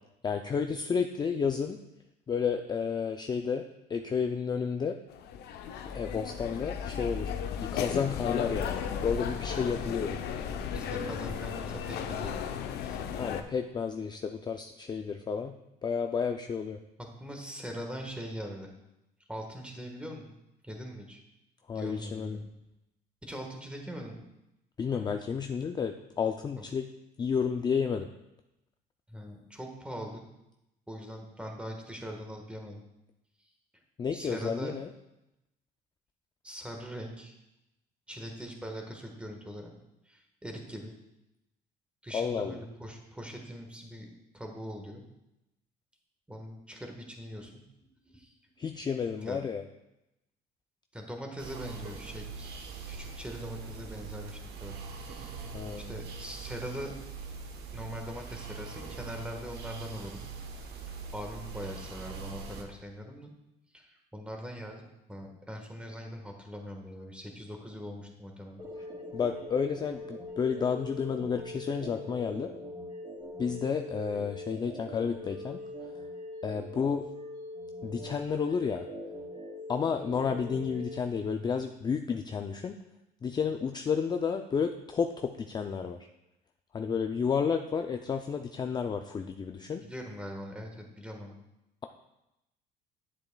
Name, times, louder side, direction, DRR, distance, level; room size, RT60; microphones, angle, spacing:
voice 1, 0.2-1.8 2.3-3.6 3.9-5.0 5.9-10.2 13.1-16.8 21.7-22.4 24.8-26.9 27.2-28.1 34.0-34.9 42.1-42.6 48.6-49.6 55.5-55.9 69.1-72.5 73.4-75.6 76.4-77.1 77.8-78.9 79.7-82.8 83.2-86.1 86.7-89.9, left 6 dB, 25° left, 6 dB, 0.4 m, -31 dB
sound 1, 5.1-13.4, left 7 dB, 75° left, 0.6 m, -35 dB
voice 2, 10.6-13.0 17.0-18.7 19.3-20.3 20.6-21.2 21.7-22.5 23.2-24.2 26.5-26.6 29.1-30.2 30.9-32.8 33.7-33.8 34.1-34.8 36.4-37.3 38.1-39.7 40.0-40.9 42.0-45.0 46.3-47.5 48.1-48.4 49.2-49.4 50.9-52.5 52.9-55.5 55.9-56.9 57.7-60.3 60.8-63.3 63.7-64.8 65.1-68.6 89.8-91.3, equal, 5° right, 2 dB, 1.4 m, -42 dB
sound 2, 51.4-62.6, right 5 dB, 75° right, 1.1 m, -42 dB
sound 3, 68.6-81.0, left 1 dB, 30° right, 2.8 m, -42 dB
9.5 x 7.9 x 2.3 m, 0.89 s
cardioid pair, 110°, 17 cm